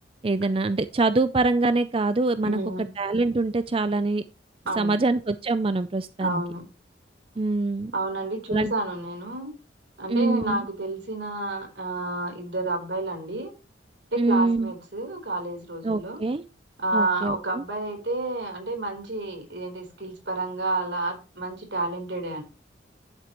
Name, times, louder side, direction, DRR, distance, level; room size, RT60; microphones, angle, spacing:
voice 1, 0.2-2.6 3.0-4.2 4.8-6.4 7.4-7.9 8.5-8.7 10.1-10.6 14.2-14.7 15.8-16.4 16.9-17.6, right 3 dB, 30° right, 0.4 m, -24 dB
voice 2, 2.4-2.9 4.7-5.0 6.2-6.7 7.9-9.5 10.0-13.5 14.1-16.2 16.8-22.4, right 2 dB, 75° right, 4.0 m, -30 dB
10.5 x 8.4 x 3.1 m
head